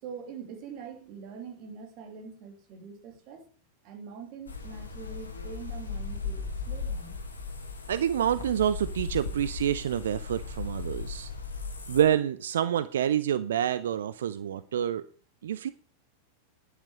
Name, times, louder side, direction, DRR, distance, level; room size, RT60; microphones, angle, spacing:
voice 1, 0.0-3.5 3.8-7.2, right 6 dB, 40° right, 4 dB, 2.9 m, -44 dB
sound 1, 4.5-12.0, left 4 dB, 75° left, 1.7 m, -37 dB
voice 2, 7.9-11.3 11.9-15.0 15.4-15.7, right 10 dB, 60° right, 15 dB, 0.5 m, -27 dB
10.5 x 8.1 x 4.9 m, 0.42 s
figure-of-eight pair, 90°, 0 cm